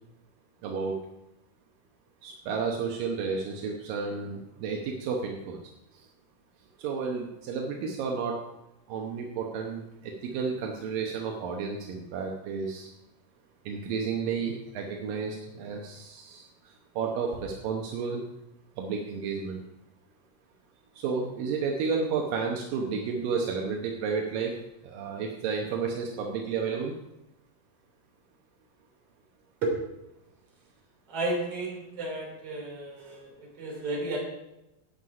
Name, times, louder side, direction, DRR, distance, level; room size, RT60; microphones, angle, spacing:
voice 1, 0.6-0.9 2.2-5.6 6.8-8.4 8.9-12.9 13.7-16.5 17.0-18.2 18.8-19.6 21.0-24.5 24.8-26.9, right 5 dB, 80° right, 1 dB, 2.8 m, -31 dB
voice 2, 31.1-34.2, right 2 dB, 45° right, -2 dB, 4.1 m, -32 dB
12.0 x 8.6 x 4.9 m, 0.91 s
omnidirectional pair, 3.9 m